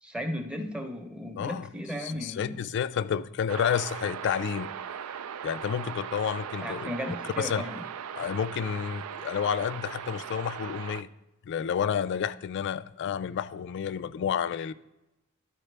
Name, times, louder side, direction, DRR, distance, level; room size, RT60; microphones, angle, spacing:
voice 1, 0.0-2.6 6.6-7.8, equal, 5° right, 0.7 m, -35 dB
voice 2, 1.4-1.7 2.0-4.7 5.4-6.9 7.2-7.7 8.2-11.1 11.5-14.7, left 8 dB, 55° left, 0.3 m, -30 dB
sound 1, 3.5-11.0, right 8 dB, 85° right, 0.4 m, -39 dB
12.0 x 4.6 x 3.3 m
head